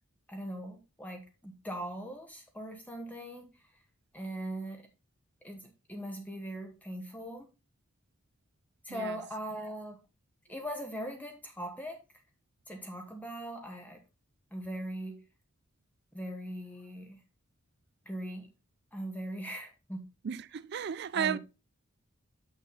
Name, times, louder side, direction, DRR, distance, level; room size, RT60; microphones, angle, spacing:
voice 1, 0.3-3.6 4.1-4.9 5.4-7.5 8.8-10.0 10.5-12.0 12.7-14.0 14.5-15.2 16.1-17.2 18.0-18.5 18.9-20.1 21.1-21.4, equal, 10° left, 1.0 m, -40 dB
voice 2, 20.2-21.4, right 8 dB, 50° right, 0.4 m, -33 dB
7.1 x 6.0 x 3.9 m
head